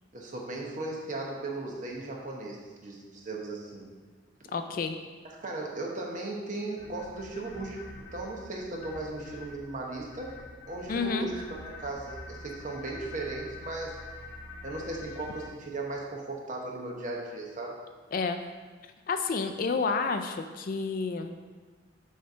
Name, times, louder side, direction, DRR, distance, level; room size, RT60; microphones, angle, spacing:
voice 1, 0.1-3.8 5.2-10.3 10.7-14.0 14.6-17.7, right 2 dB, 40° right, -1 dB, 1.0 m, -37 dB
voice 2, 4.5-5.0 10.9-11.3 18.1-18.4 19.1-21.3, left 4 dB, 45° left, 7 dB, 0.3 m, -30 dB
sound 1, 6.8-15.5, left 2 dB, 15° left, 0.9 m, -45 dB
6.5 x 3.3 x 5.5 m, 1.4 s
head